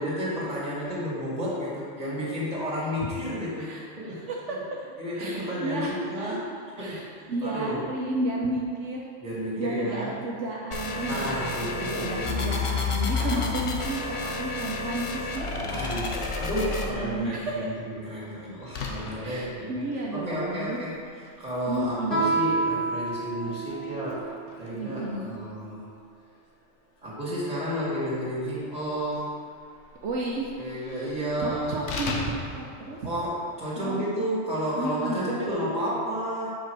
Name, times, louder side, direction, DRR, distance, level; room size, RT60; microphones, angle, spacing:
voice 1, 0.0-4.2 5.0-6.4 6.8-7.8 9.2-10.1 11.1-12.6 13.1-13.5 15.7-24.3 24.6-25.9 27.0-29.3 30.6-31.9 33.0-36.6, equal, 30° right, -7 dB, 2.3 m, -32 dB
voice 2, 3.6-4.6 5.1-6.4 6.8-9.1 9.6-16.0 16.7-17.7 19.2-20.8 21.7-22.2 23.4-23.6 24.7-25.4 30.0-30.5 31.4-33.0 33.8-34.1 34.8-35.6, right 2 dB, 80° right, -3 dB, 1.1 m, -32 dB
sound 1, 10.7-16.9, left 4 dB, 40° left, 0.5 m, -30 dB
Slam, 16.5-33.6, left 3 dB, 85° left, 1.2 m, -43 dB
Guitar, 22.1-24.5, right 3 dB, 65° left, 2.1 m, -28 dB
7.5 x 5.2 x 4.6 m, 2.2 s
omnidirectional pair, 1.2 m